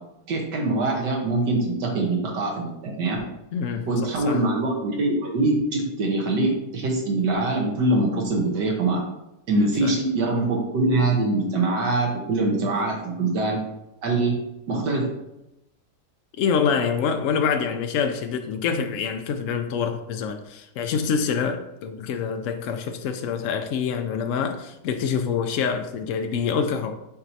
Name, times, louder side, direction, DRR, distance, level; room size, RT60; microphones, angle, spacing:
voice 1, 0.3-3.2 3.9-9.0 9.5-13.6 14.0-14.4 14.7-15.1, right 2 dB, 85° right, -1 dB, 1.7 m, -23 dB
voice 2, 3.5-4.4 9.8-9.9 16.4-27.0, left 6 dB, 75° left, 6 dB, 0.7 m, -26 dB
8.1 x 4.4 x 2.7 m, 0.87 s
omnidirectional pair, 1.8 m